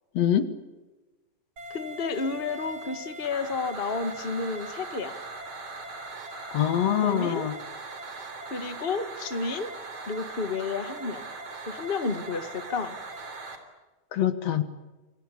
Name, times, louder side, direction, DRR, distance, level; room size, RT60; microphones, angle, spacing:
voice 1, 0.1-0.5 6.5-7.5 14.1-14.6, left 10 dB, 65° left, 11 dB, 2.6 m, -24 dB
sound 1, 1.6-13.6, right 3 dB, 55° right, 4.3 m, -40 dB
voice 2, 1.7-5.1 7.0-7.5 8.4-9.7 10.1-11.3 11.7-13.0, left 4 dB, 25° left, 9 dB, 1.3 m, -31 dB
28.0 x 23.0 x 8.5 m, 1.1 s
omnidirectional pair, 3.3 m